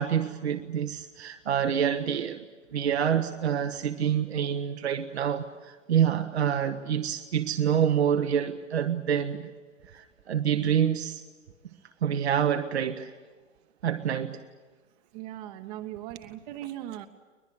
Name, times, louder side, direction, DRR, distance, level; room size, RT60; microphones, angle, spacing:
voice 1, 0.0-2.4 2.7-9.5 9.9-11.2 12.0-13.1 13.8-14.4, right 8 dB, 60° right, 1.1 m, -27 dB
voice 2, 15.1-17.1, right 13 dB, 35° right, 1.0 m, -39 dB
22.0 x 21.0 x 9.4 m
figure-of-eight pair, 110°, 37 cm